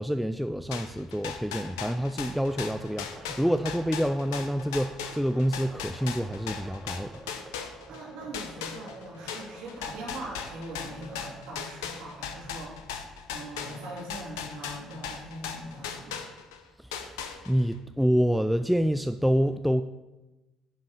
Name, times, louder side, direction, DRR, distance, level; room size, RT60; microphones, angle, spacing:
voice 1, 0.0-7.1 16.8-17.2 17.5-19.8, equal, ahead, 9 dB, 0.3 m, -27 dB
sound 1, 0.7-8.0 8.3-16.6 16.9-17.7, left 7 dB, 70° left, 0.7 m, -37 dB
sound 2, 2.4-11.2, right 2 dB, 40° right, 2.0 m, -49 dB
voice 2, 7.9-12.9 13.3-16.3, right 1 dB, 60° right, -3 dB, 2.8 m, -41 dB
10.0 x 5.2 x 5.7 m, 1.1 s
figure-of-eight pair, 50°, 2 cm